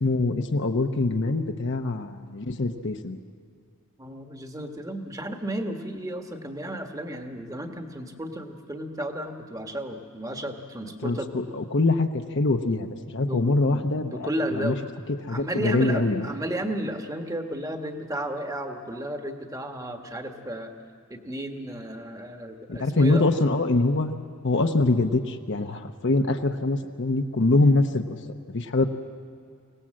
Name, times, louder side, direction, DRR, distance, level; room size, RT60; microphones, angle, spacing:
voice 1, 0.0-3.2 11.0-14.3 14.5-14.7 15.3-16.3 22.7-24.1 24.4-28.0 28.5-28.9, left 2 dB, 55° left, 5 dB, 0.9 m, -24 dB
voice 2, 4.0-11.4 13.2-14.8 15.3-20.7 21.1-23.2, right 1 dB, 15° right, 5 dB, 1.4 m, -33 dB
25.0 x 18.0 x 7.6 m, 2.2 s
head